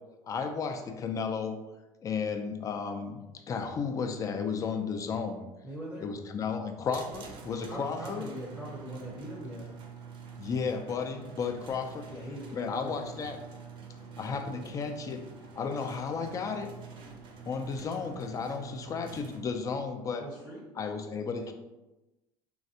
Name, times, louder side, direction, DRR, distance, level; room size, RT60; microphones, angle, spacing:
voice 1, 0.3-1.6 2.0-3.2 3.5-5.4 6.0-8.3 10.4-12.1 12.5-13.4 14.2-15.3 15.6-16.7 17.5-20.3 20.8-21.5, left 5 dB, 30° left, 5 dB, 0.4 m, -33 dB
voice 2, 5.6-6.1 7.7-9.7 12.1-13.1 20.2-20.7, equal, 10° right, -5 dB, 0.6 m, -41 dB
sound 1, 6.9-19.4, right 6 dB, 50° right, 0.5 m, -47 dB
3.2 x 2.3 x 2.7 m, 1.0 s
supercardioid pair, 100°, 11 cm